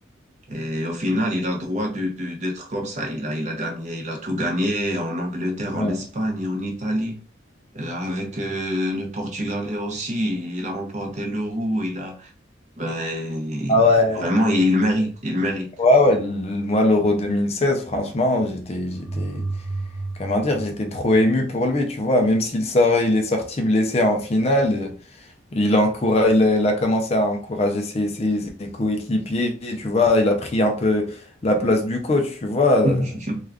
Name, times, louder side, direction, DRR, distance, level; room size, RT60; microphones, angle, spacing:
voice 1, 0.5-7.2 7.7-12.3 12.8-13.8 14.1-15.7 32.8-33.4, equal, 35° right, 0.6 m, -25 dB
voice 2, 13.7-14.2 15.8-19.5 20.2-24.9 25.5-33.0, left 1 dB, 30° left, 0.4 m, -20 dB
sound 1, 18.9-21.8, right 2 dB, 85° right, 0.6 m, -32 dB
2.3 x 2.3 x 3.3 m
head